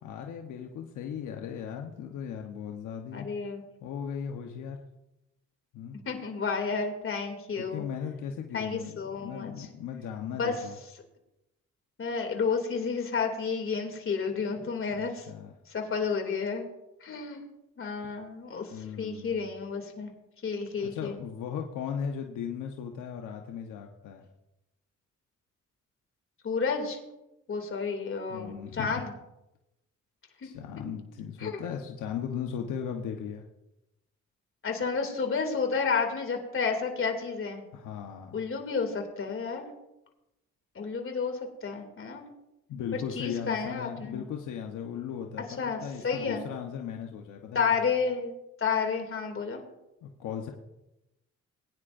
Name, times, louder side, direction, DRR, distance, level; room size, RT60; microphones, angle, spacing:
voice 1, 0.0-3.3 3.8-4.8 5.7-6.0 7.6-10.8 14.9-15.5 18.0-18.1 18.7-19.5 20.8-24.3 28.3-29.0 30.4-33.4 37.7-38.4 42.7-47.8 50.0-50.5, left 8 dB, 80° left, 2 dB, 1.1 m, -37 dB
voice 2, 3.1-3.6 6.1-7.8 8.5-9.7 10.4-10.5 12.0-15.3 15.7-16.7 17.0-17.4 17.8-18.7 19.0-20.1 20.4-21.1 26.4-27.0 27.5-29.1 30.4-30.5 31.4-31.6 34.6-37.6 38.3-39.7 40.7-42.2 42.9-44.2 45.6-46.4 47.5-48.3 48.6-49.6, left 5 dB, 45° left, 3 dB, 2.8 m, -31 dB
21.0 x 9.9 x 2.6 m, 0.92 s
cardioid pair, 90°, 30 cm